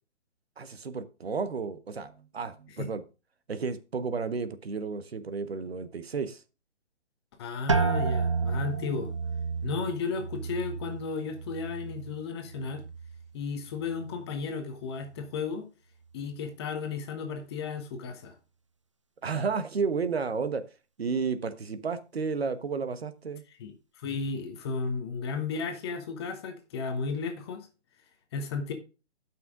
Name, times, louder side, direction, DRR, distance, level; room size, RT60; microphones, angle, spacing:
voice 1, 0.6-3.0 3.5-6.4 19.2-20.6 21.0-23.4, right 5 dB, 60° right, 1.3 m, -32 dB
voice 2, 7.4-9.1 9.6-12.8 13.3-15.6 16.1-18.3 23.6-23.7 24.0-27.7 28.3-28.7, left 5 dB, 20° left, 1.1 m, -34 dB
sound 1, 7.7-13.3 13.6-14.3 14.9-15.3, right 5 dB, 30° right, 0.4 m, -32 dB
12.0 x 6.0 x 3.7 m
figure-of-eight pair, 140°, 35 cm